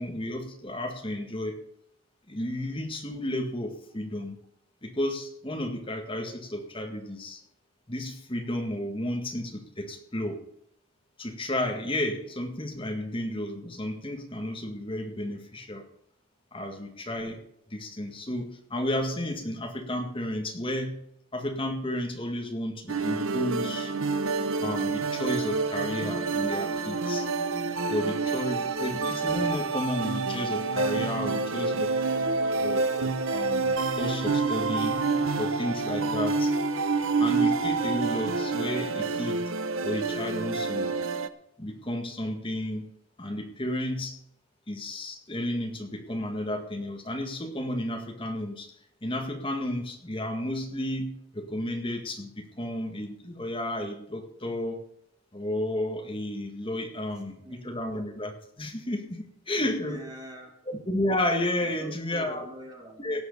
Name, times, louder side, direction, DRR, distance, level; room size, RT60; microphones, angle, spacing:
voice 1, 0.0-1.6 2.3-4.4 4.8-7.4 7.9-10.4 11.2-15.8 16.5-17.4 17.7-21.0 21.3-23.9 24.6-27.3 27.9-31.9 32.6-35.0 35.3-36.5 37.2-39.5 39.8-41.0 41.6-42.9 43.2-44.2 44.7-48.7 49.0-54.9 55.3-60.0 60.7-62.4 63.0-63.2, left 1 dB, 25° left, 3 dB, 1.9 m, -32 dB
voice 2, 16.7-17.1 36.9-37.2 57.4-57.9 59.5-60.5 61.6-63.2, right 1 dB, 20° right, 1 dB, 2.7 m, -46 dB
sound 1, 22.9-41.3, right 4 dB, 70° right, 0.8 m, -28 dB
17.5 x 6.4 x 6.8 m, 0.73 s
head